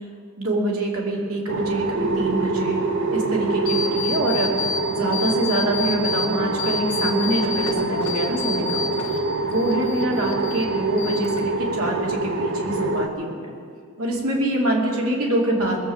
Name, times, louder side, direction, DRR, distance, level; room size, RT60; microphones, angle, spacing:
voice 1, 0.4-2.8 3.1-4.6 4.9-8.8 9.1-13.5 14.0-15.8, right 1 dB, 70° right, -1 dB, 2.7 m, -25 dB
sound 1, 1.5-13.1, right 3 dB, 55° right, 0.7 m, -26 dB
Telephone, 1.9-3.9, right 4 dB, 30° right, 1.5 m, -28 dB
sound 2, 3.7-4.8 5.1-6.3 6.6-9.2 9.5-10.7 11.0-11.6, left 6 dB, 70° left, 1.6 m, -29 dB
20.5 x 7.3 x 7.6 m, 2.2 s
head